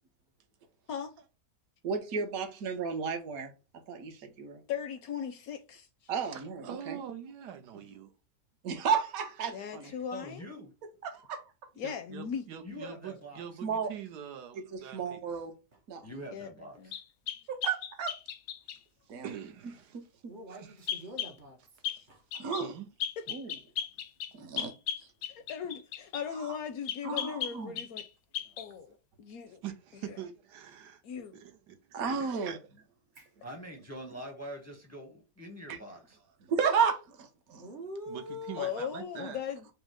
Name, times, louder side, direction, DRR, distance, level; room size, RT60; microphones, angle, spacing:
voice 1, 1.8-3.5 3.9-4.6 6.1-7.0 8.6-9.9 11.0-11.4 13.6-13.9 14.7-15.5 15.9-16.1 17.5-18.2 19.1-19.3 19.9-20.0 22.3-22.7 23.3-23.5 24.3-24.7 25.0-25.1 26.4-26.5 27.0-27.8 31.9-32.8 35.7-35.8 36.5-37.7, right 6 dB, 60° right, 1.3 m, -33 dB
voice 2, 4.7-6.1 9.5-10.4 11.8-12.4 16.3-16.5 16.8-16.9 23.2-23.3 25.3-28.0 28.6-29.6 30.0-30.2 31.0-31.4 38.6-39.7, left 8 dB, 70° left, 0.9 m, -38 dB
voice 3, 6.2-8.1 11.8-15.2 19.1-20.0 20.5-20.7 21.8-22.1 22.4-22.9 29.6-31.0 31.3-32.3 38.1-39.4, right 9 dB, 75° right, 1.3 m, -44 dB
voice 4, 10.1-10.7 12.6-13.5 16.0-17.0 33.4-36.2, equal, 15° left, 0.5 m, -44 dB
sound 1, 16.9-18.8 20.9-21.4 21.8-22.0 22.3-22.7 23.0-26.3 26.9-28.1 28.3-28.7, left 9 dB, 90° left, 1.2 m, -36 dB
voice 5, 20.3-21.6 22.1-22.2 24.6-24.7 33.1-33.3 37.5-38.7, left 1 dB, 45° right, 0.6 m, -44 dB
4.9 x 2.1 x 4.7 m
omnidirectional pair, 1.8 m